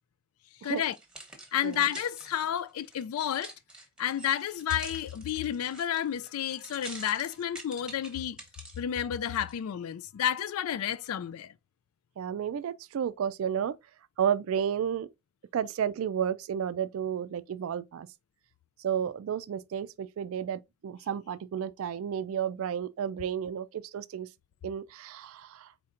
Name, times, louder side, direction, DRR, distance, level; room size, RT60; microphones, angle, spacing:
voice 1, 0.6-1.0 1.5-3.5 4.0-8.4 8.8-11.5, left 10 dB, 85° left, 0.3 m, -31 dB
sound 1, 0.8-8.8 9.4-9.5, right 2 dB, 5° right, 0.9 m, -47 dB
voice 2, 12.2-13.7 14.2-15.1 15.5-18.1 18.8-24.3 24.6-25.7, right 8 dB, 75° right, 0.3 m, -32 dB
4.3 x 4.2 x 2.4 m
head